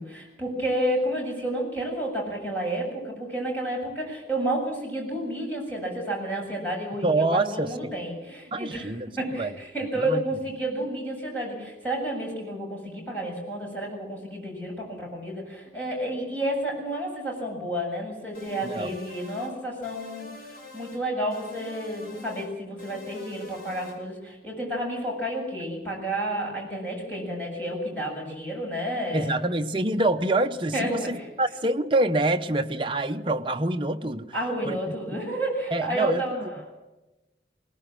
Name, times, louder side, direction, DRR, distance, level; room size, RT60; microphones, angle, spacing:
voice 1, 0.0-20.3 20.7-29.3 30.7-31.3 34.3-36.7, right 1 dB, 10° left, 7.6 m, -31 dB
voice 2, 7.0-7.9 8.5-9.1 9.4-9.5 10.0-10.2 18.6-18.9 29.1-34.3 34.6-34.9 35.7-36.5, right 2 dB, 30° right, 0.8 m, -26 dB
sound 1, 18.3-19.5 19.8-21.0 21.3-22.5 22.8-24.0, left 3 dB, 55° left, 4.8 m, -45 dB
21.5 x 18.5 x 7.6 m
head